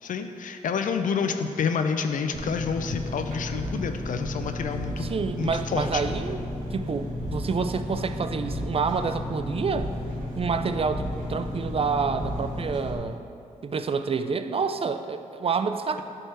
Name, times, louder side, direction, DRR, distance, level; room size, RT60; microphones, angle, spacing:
voice 1, 0.0-5.1 5.4-6.0, left 6 dB, 70° left, 7 dB, 0.4 m, -28 dB
Engine, 2.3-13.0, left 1 dB, 75° right, 1.3 m, -33 dB
voice 2, 5.0-6.4 6.7-9.9 10.3-13.2 13.6-16.0, right 5 dB, 45° right, 9 dB, 0.4 m, -28 dB
8.9 x 3.6 x 4.2 m, 2.6 s
cardioid pair, 55°, 14 cm